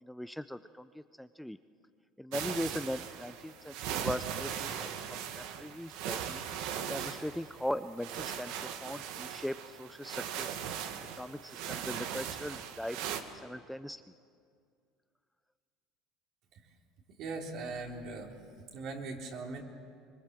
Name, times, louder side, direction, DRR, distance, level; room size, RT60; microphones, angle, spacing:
voice 1, 0.0-1.6 2.2-6.4 6.9-10.6 11.2-13.0 13.4-14.0, equal, ahead, 11 dB, 0.5 m, -39 dB
sound 1, 2.3-13.2, right 9 dB, 75° right, 1.7 m, -39 dB
voice 2, 17.2-18.4 18.7-19.6, right 3 dB, 55° right, 1 dB, 3.8 m, -40 dB
24.0 x 22.5 x 7.6 m, 2.2 s
supercardioid pair, 110°, 0 cm